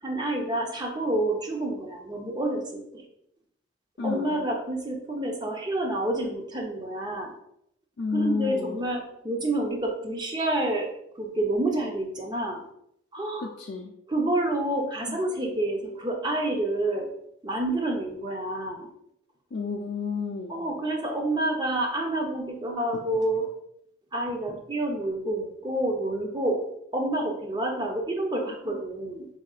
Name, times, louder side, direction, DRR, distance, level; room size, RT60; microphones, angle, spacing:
voice 1, 0.0-3.0 4.0-7.3 8.1-12.6 13.1-13.5 14.1-17.1 17.4-18.9 20.5-23.5 24.1-26.6 26.9-29.3, right 1 dB, 20° right, 1 dB, 0.6 m, -28 dB
voice 2, 4.0-4.5 8.0-8.8 13.4-13.9 15.1-15.2 19.5-20.6 22.9-23.0 28.5-28.6, left 4 dB, 65° left, -1 dB, 0.4 m, -31 dB
4.9 x 4.0 x 2.4 m, 0.75 s
head